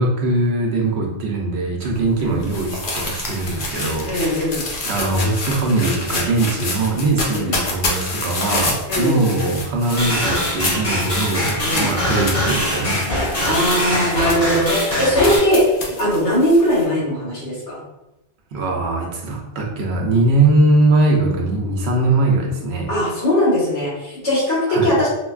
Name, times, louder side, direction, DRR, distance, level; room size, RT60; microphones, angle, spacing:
voice 1, 0.0-4.1 4.9-13.0 18.5-22.9 24.7-24.9, right 2 dB, 70° right, 1 dB, 0.9 m, -20 dB
sound 1, 1.8-16.8, left 2 dB, 55° left, 0.8 m, -28 dB
voice 2, 4.0-4.6 7.3-7.5 8.9-9.2 11.6-11.9 13.4-17.8 22.9-25.1, equal, 90° left, -7 dB, 1.7 m, -19 dB
sound 2, 10.0-15.4, left 1 dB, 70° left, 1.7 m, -22 dB
4.4 x 2.2 x 2.3 m, 0.94 s
omnidirectional pair, 1.2 m